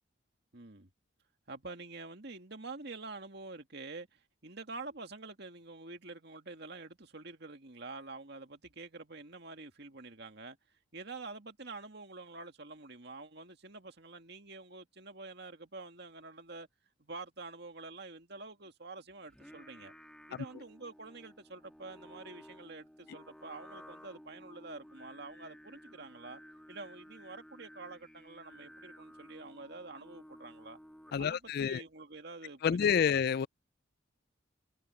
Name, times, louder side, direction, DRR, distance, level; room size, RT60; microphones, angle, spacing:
voice 1, 0.5-0.9 1.5-16.7 17.0-19.9 20.3-26.4 26.7-30.8 31.2-33.2, right 3 dB, 55° right, 2.2 m, -47 dB
Singing, 19.3-31.4, equal, 5° left, 1.7 m, -55 dB
voice 2, 31.1-31.8 32.6-33.5, left 7 dB, 50° left, 0.3 m, -28 dB
head